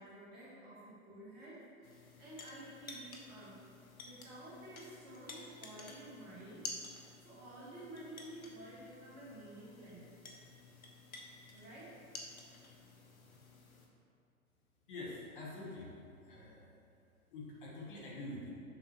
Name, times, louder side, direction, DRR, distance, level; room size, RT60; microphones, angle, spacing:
voice 1, 0.0-6.6 7.2-10.1 11.5-12.0, right 1 dB, 25° right, -6 dB, 1.4 m, -51 dB
sound 1, 1.8-13.9, left 2 dB, 70° left, 1.0 m, -52 dB
voice 2, 14.9-15.9 16.3-16.7 17.3-18.5, left 2 dB, 35° left, -4 dB, 1.2 m, -46 dB
7.0 x 5.5 x 3.0 m, 2.5 s
figure-of-eight pair, 120°, 43 cm